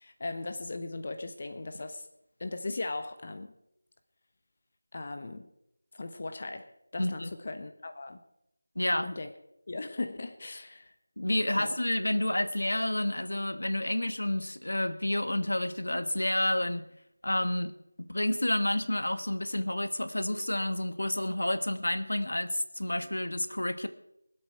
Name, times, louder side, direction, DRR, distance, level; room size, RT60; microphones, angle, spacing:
voice 1, 0.0-2.1 2.4-3.5 4.9-5.5 5.9-6.7 6.9-8.2 9.0-9.3 9.7-10.9 11.5-11.7, left 2 dB, 40° left, 8 dB, 1.0 m, -38 dB
voice 2, 7.0-7.3 8.7-9.1 11.2-16.9 17.2-23.9, left 1 dB, 85° left, 10 dB, 1.5 m, -30 dB
24.5 x 8.2 x 4.7 m, 0.80 s
figure-of-eight pair, 170°, 0 cm